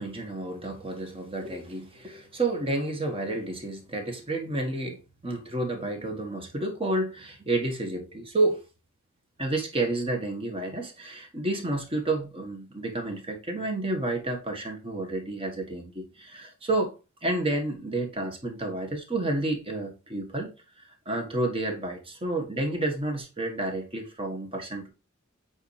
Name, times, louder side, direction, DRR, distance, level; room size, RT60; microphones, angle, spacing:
voice 1, 0.0-8.6 9.4-16.9 17.2-20.5 21.0-24.9, right 2 dB, 25° right, 1.5 m, -30 dB
8.1 x 4.3 x 3.3 m
head